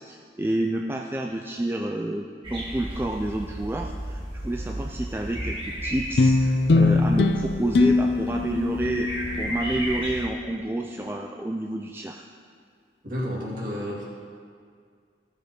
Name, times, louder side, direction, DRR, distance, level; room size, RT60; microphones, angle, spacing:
voice 1, 0.0-9.1 9.4-12.2, right 1 dB, 15° right, 2 dB, 0.3 m, -29 dB
sound 1, 2.4-10.3, equal, 30° right, 1.8 m, -34 dB
sound 2, 6.2-10.8, left 3 dB, 70° left, 0.5 m, -23 dB
voice 2, 13.0-14.0, equal, 50° right, -5 dB, 2.5 m, -31 dB
14.5 x 6.3 x 5.2 m, 2.1 s
head